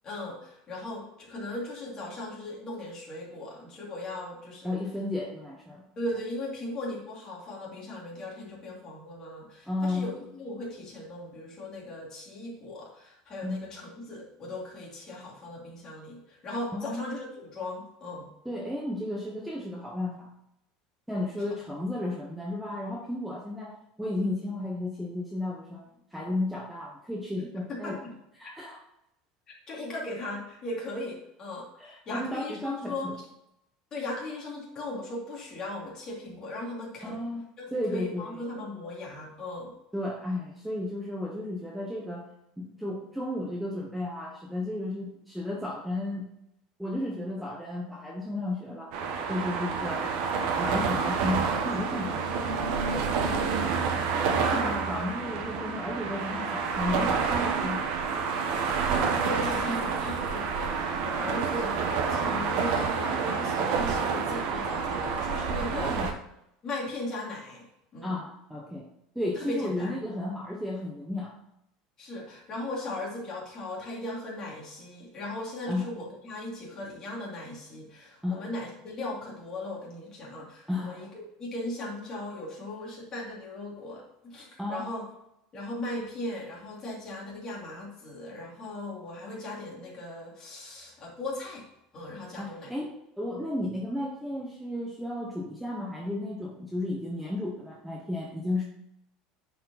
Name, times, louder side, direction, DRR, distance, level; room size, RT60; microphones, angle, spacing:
voice 1, 0.0-4.8 6.0-18.3 27.7-28.1 29.7-33.3 33.9-37.2 37.6-39.7 53.3-54.6 59.0-66.0 66.6-68.2 69.4-69.9 72.0-85.1 85.5-91.7 91.9-92.7, left 1 dB, 25° left, -3 dB, 2.5 m, -38 dB
voice 2, 4.6-5.9 9.6-10.1 13.4-13.6 16.7-17.1 18.4-20.3 21.1-25.8 26.1-28.0 28.4-28.8 31.8-33.1 37.0-37.4 37.7-38.4 39.9-42.3 42.6-46.3 46.8-48.9 49.3-50.1 50.6-52.5 54.4-58.1 65.7-66.1 68.0-68.9 69.1-71.3 75.7-75.9 78.2-78.4 80.7-81.1 84.6-84.9 92.4-98.6, left 1 dB, ahead, -2 dB, 0.9 m, -33 dB
sound 1, 48.9-66.1, right 5 dB, 55° right, 1.1 m, -28 dB
10.0 x 4.6 x 4.1 m, 0.81 s
cardioid pair, 165°, 2 cm